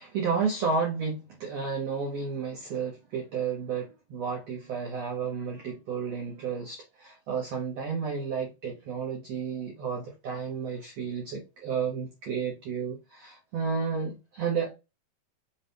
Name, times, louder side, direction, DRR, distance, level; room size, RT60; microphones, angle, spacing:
voice 1, 0.0-14.7, right 5 dB, 85° right, 1.4 m, -32 dB
5.6 x 2.8 x 3.4 m
omnidirectional pair, 4.4 m